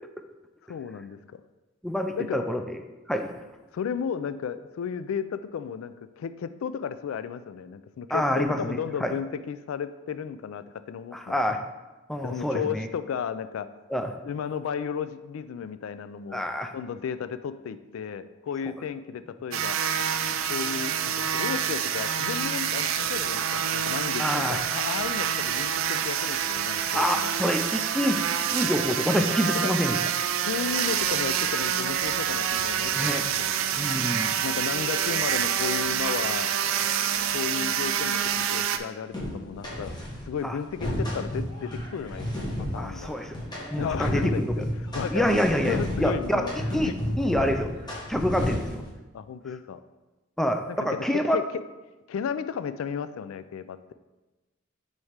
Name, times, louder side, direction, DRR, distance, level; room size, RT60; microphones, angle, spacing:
voice 1, 0.7-1.4 2.1-2.4 3.7-11.4 12.2-13.7 14.2-16.4 16.7-19.8 20.5-27.3 29.6-29.7 30.4-33.5 34.4-36.5 37.3-39.9 40.3-43.1 43.8-44.6 44.9-46.5 46.9-47.0 49.1-49.8 50.7-51.4 52.1-53.9, left 7 dB, 85° left, 12 dB, 0.3 m, -34 dB
voice 2, 1.8-2.8 3.1-3.3 8.1-9.1 11.1-11.6 12.1-12.9 13.9-14.1 16.3-16.7 24.2-24.6 26.9-28.2 28.5-30.0 32.9-33.3 33.7-34.4 40.4-40.5 42.7-43.4 43.7-44.6 45.1-46.4 46.7-47.7 48.1-48.8 50.4-51.4, equal, ahead, 5 dB, 0.3 m, -27 dB
sound 1, 19.5-38.8, right 8 dB, 80° right, 0.4 m, -27 dB
sound 2, 39.1-40.2 40.6-48.9, equal, 20° left, 1.4 m, -32 dB
4.6 x 4.1 x 5.0 m, 1.1 s
head